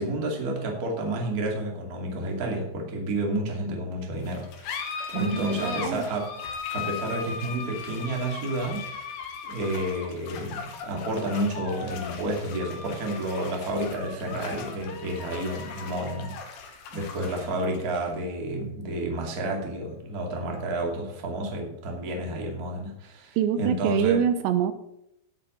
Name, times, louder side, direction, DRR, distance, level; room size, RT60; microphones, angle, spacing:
voice 1, 0.0-6.4 6.7-8.9 9.4-24.2, right 1 dB, 30° right, 1 dB, 1.9 m, -30 dB
sound 1, 4.2-21.2, left 6 dB, 65° left, 3.0 m, -39 dB
voice 2, 5.1-6.0 23.4-24.7, right 9 dB, 80° right, 10 dB, 3.0 m, -25 dB
18.5 x 8.4 x 3.8 m, 0.78 s
omnidirectional pair, 5.0 m